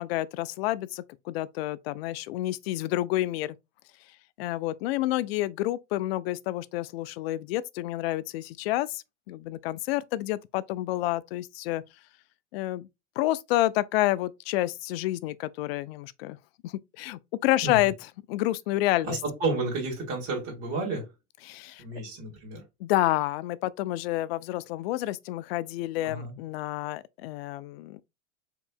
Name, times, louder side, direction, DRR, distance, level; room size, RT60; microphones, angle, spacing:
voice 1, 0.0-3.6 4.4-11.8 12.5-12.9 13.2-16.4 16.6-19.2 21.4-21.8 22.8-28.0, left 16 dB, 55° left, 0.5 m, -29 dB
voice 2, 19.1-21.1 21.8-22.6 26.0-26.3, right 3 dB, 40° right, 2.5 m, -31 dB
4.9 x 3.3 x 2.5 m
hypercardioid pair, 105°, 37 cm